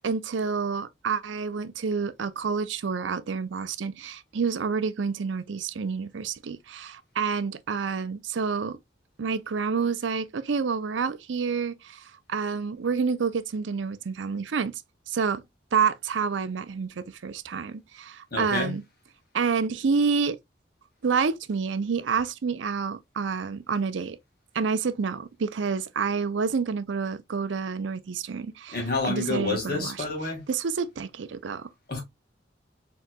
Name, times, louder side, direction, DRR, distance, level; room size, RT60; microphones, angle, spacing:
voice 1, 0.0-8.8 9.2-14.7 15.1-15.4 15.7-18.8 19.3-20.4 21.0-24.2 24.5-30.0 30.5-31.7, right 5 dB, 80° right, 0.5 m, -28 dB
voice 2, 18.3-18.7 28.7-30.4 31.9-32.0, left 3 dB, 55° left, 1.9 m, -29 dB
4.6 x 3.7 x 2.2 m
head